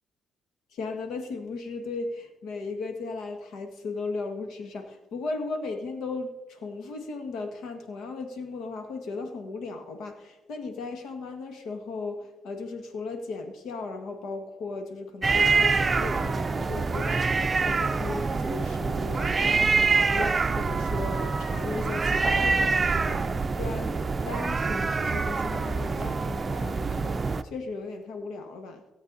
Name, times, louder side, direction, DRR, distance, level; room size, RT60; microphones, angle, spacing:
voice 1, 0.7-24.0 24.2-28.8, left 3 dB, 80° left, 6 dB, 1.7 m, -36 dB
sound 1, 15.2-27.4, right 4 dB, 30° right, 0.5 m, -25 dB
16.5 x 7.9 x 4.0 m, 1.1 s
cardioid pair, 90°, 0 cm